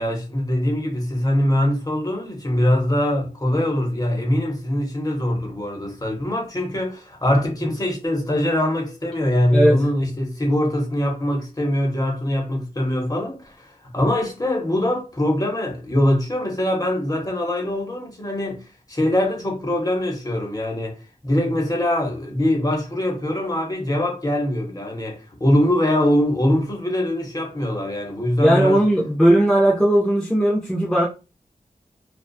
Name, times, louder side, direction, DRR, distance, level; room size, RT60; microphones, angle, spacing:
voice 1, 0.0-18.6 18.9-21.0 21.2-28.8, left 1 dB, 25° left, 0.8 m, -22 dB
voice 2, 9.5-9.8 28.4-31.1, right 1 dB, 5° left, 0.5 m, -17 dB
2.5 x 2.3 x 2.2 m
wide cardioid pair, 80°, 14 cm